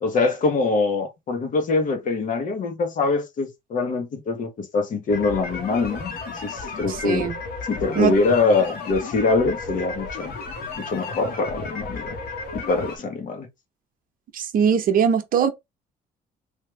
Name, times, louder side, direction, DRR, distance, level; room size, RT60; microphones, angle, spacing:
voice 1, 0.0-6.1 6.4-7.3 7.7-10.3 10.8-12.1 12.5-13.5, left 3 dB, 50° left, 1.2 m, -23 dB
sound 1, 5.1-13.0, left 4 dB, 65° left, 1.6 m, -33 dB
voice 2, 7.0-7.3 8.0-8.1 14.3-15.5, right 7 dB, 55° right, 0.8 m, -20 dB
3.5 x 2.8 x 3.3 m
cardioid pair, 110°, 17 cm